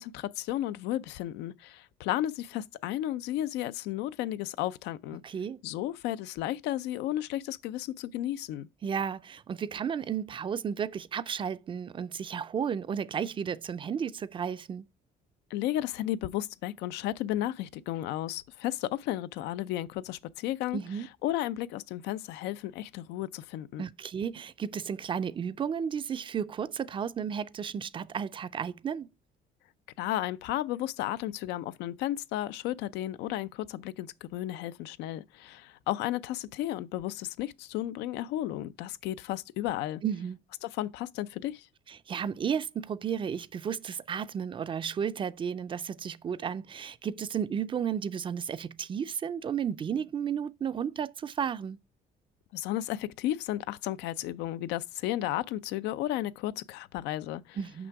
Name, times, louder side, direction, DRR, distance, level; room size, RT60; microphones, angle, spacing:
voice 1, 0.0-5.2 5.6-8.7 15.5-20.8 21.2-23.9 30.0-40.0 40.6-41.7 52.5-57.6, left 13 dB, 90° left, 0.5 m, -33 dB
voice 2, 5.2-5.6 8.8-14.9 20.7-21.1 23.8-29.1 40.0-40.4 41.9-51.8 57.6-57.9, right 7 dB, 30° right, 0.4 m, -33 dB
6.1 x 5.9 x 4.6 m
cardioid pair, 110°, 17 cm